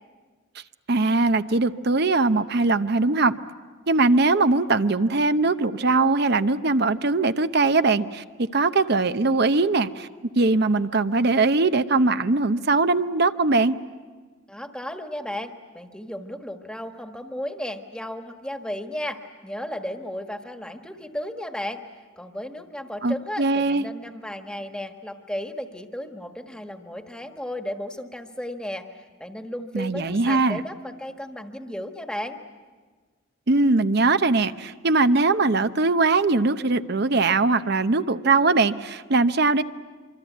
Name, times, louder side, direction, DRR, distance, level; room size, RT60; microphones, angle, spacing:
voice 1, 0.9-3.3 3.9-10.1 10.4-13.8 23.0-23.8 29.7-30.6 33.5-39.6, right 3 dB, 55° right, 11 dB, 0.8 m, -21 dB
voice 2, 14.5-21.8 22.2-32.4, left 1 dB, 5° left, 6 dB, 1.5 m, -34 dB
25.5 x 25.0 x 9.3 m, 1.4 s
head